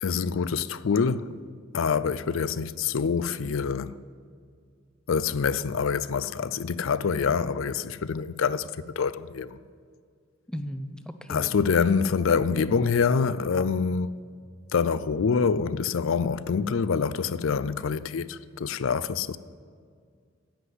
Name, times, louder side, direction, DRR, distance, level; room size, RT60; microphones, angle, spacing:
voice 1, 0.0-1.4 1.7-3.9 5.1-9.6 11.3-14.1 14.7-19.4, left 5 dB, 70° left, 0.4 m, -26 dB
voice 2, 10.5-11.5, equal, 5° left, 0.6 m, -36 dB
10.5 x 8.1 x 7.8 m
head